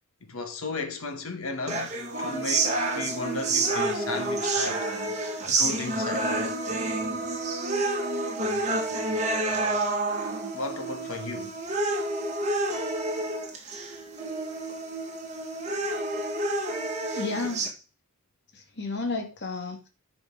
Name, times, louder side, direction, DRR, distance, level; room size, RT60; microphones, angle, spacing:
voice 1, 0.2-4.9 5.5-6.3 10.5-11.6, left 3 dB, 70° left, 1.4 m, -35 dB
sound 1, 1.7-17.7, right 2 dB, 35° right, 1.9 m, -29 dB
voice 2, 17.1-17.7 18.5-19.9, left 3 dB, 55° left, 1.9 m, -32 dB
10.5 x 5.1 x 3.8 m
head